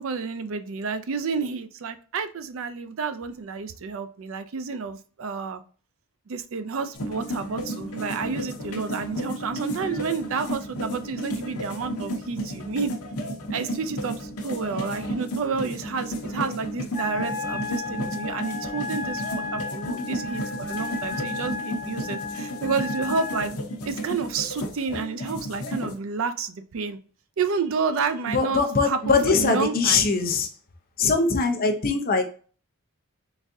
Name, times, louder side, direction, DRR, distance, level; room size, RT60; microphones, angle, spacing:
voice 1, 0.0-5.6 6.3-12.9 13.5-23.5 23.9-27.0 27.4-30.1, right 5 dB, 65° right, 11 dB, 0.4 m, -30 dB
sound 1, 6.9-25.9, equal, 85° left, 0.8 m, -33 dB
Wind instrument woodwind instrument, 16.9-23.5, left 4 dB, 20° right, 1.0 m, -34 dB
voice 2, 28.3-30.5 31.0-32.2, left 4 dB, 40° left, 5 dB, 0.6 m, -22 dB
4.0 x 3.5 x 2.6 m, 0.41 s
head